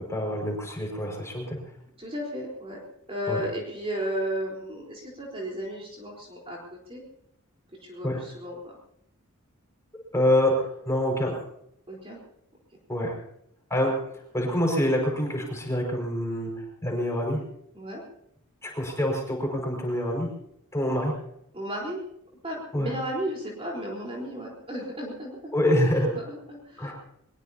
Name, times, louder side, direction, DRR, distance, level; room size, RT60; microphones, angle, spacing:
voice 1, 0.0-1.6 3.3-3.4 8.0-8.2 10.1-11.4 12.9-13.2 13.7-13.9 14.3-17.4 18.6-20.3 20.7-21.1 22.7-22.9 25.5-26.1 26.8-26.9, left 1 dB, 15° left, 0 dB, 5.5 m, -26 dB
voice 2, 2.0-2.8 3.1-7.0 7.8-8.8 11.9-12.2 17.7-18.0 21.5-22.0 22.4-25.6 25.9-26.9, equal, 25° right, -3 dB, 4.0 m, -34 dB
23.0 x 21.5 x 2.9 m, 0.75 s
head